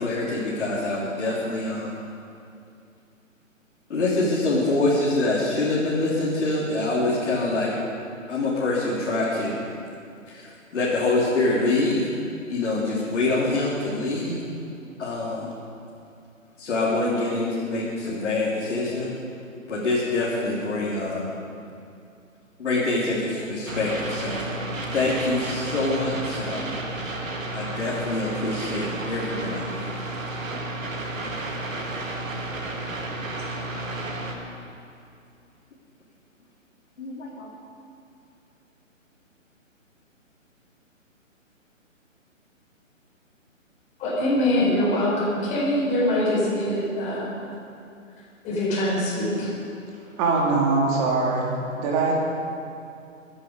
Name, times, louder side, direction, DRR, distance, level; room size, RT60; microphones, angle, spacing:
voice 1, 0.0-1.9 3.9-7.7 8.3-9.6 10.3-12.1 12.5-14.3 15.0-15.5 16.6-19.1 19.7-21.3 22.6-24.4 24.9-26.8 27.5-29.9 37.0-37.5, left 2 dB, 60° left, -7 dB, 3.5 m, -25 dB
sound 1, 23.7-34.3, right 2 dB, 70° right, 2.4 m, -32 dB
voice 2, 44.0-47.3 48.4-49.5, left 1 dB, 15° left, -7 dB, 4.7 m, -23 dB
voice 3, 50.2-52.2, right 3 dB, 25° right, -3 dB, 2.8 m, -22 dB
22.5 x 10.0 x 5.2 m, 2.5 s
figure-of-eight pair, 145°, 40 cm